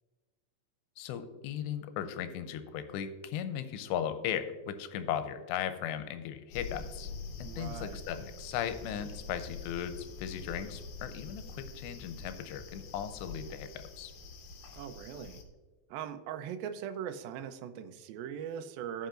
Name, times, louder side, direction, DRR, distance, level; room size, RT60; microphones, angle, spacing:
voice 1, 1.0-7.1 7.4-14.1, left 9 dB, 90° left, 10 dB, 2.8 m, -37 dB
sound 1, 6.5-15.4, left 3 dB, 70° left, 2.7 m, -45 dB
voice 2, 7.4-8.0 14.8-15.4 15.9-19.1, right 8 dB, 80° right, 7 dB, 2.1 m, -40 dB
16.0 x 5.6 x 2.5 m, 1.3 s
omnidirectional pair, 5.0 m